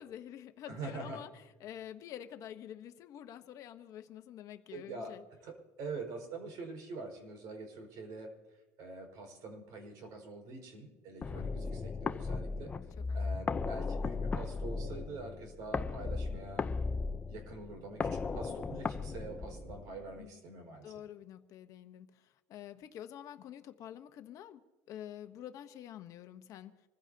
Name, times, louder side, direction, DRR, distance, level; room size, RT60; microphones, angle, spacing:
voice 1, 0.0-5.2 11.3-11.4 13.1-13.2 20.2-20.4 20.8-26.7, left 10 dB, 55° left, 1.0 m, -48 dB
voice 2, 0.7-1.2 4.7-8.3 8.8-12.7 13.1-16.7 17.3-20.9, right 3 dB, 65° right, 5.2 m, -45 dB
sound 1, 11.2-20.2, left 4 dB, 20° left, 0.7 m, -36 dB
26.0 x 15.5 x 2.8 m
cardioid pair, 135°, 7 cm